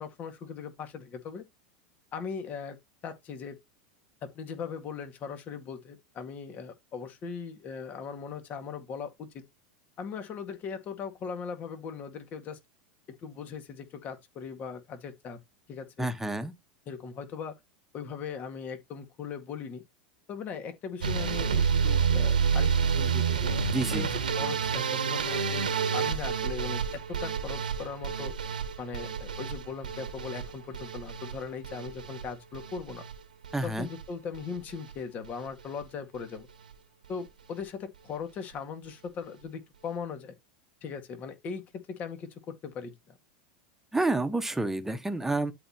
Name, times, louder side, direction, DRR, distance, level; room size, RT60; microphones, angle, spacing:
voice 1, 0.0-1.4 2.1-2.8 3.0-3.6 4.2-9.4 10.0-12.6 13.2-15.4 15.7-16.1 16.9-17.6 17.9-19.8 20.3-22.7 23.0-23.6 23.9-25.7 25.9-28.4 28.8-33.0 33.6-36.5 37.1-40.3 40.8-43.2, left 6 dB, 40° left, 2.1 m, -39 dB
voice 2, 16.0-16.5 23.7-24.1 33.5-33.9 43.9-45.5, right 2 dB, 5° right, 1.4 m, -29 dB
sound 1, 21.0-33.1 33.4-34.0 34.3-34.9 35.2-35.5 35.8-35.9 36.1-36.2, right 6 dB, 90° right, 1.5 m, -29 dB
12.0 x 4.3 x 3.0 m
hypercardioid pair, 95°, 4 cm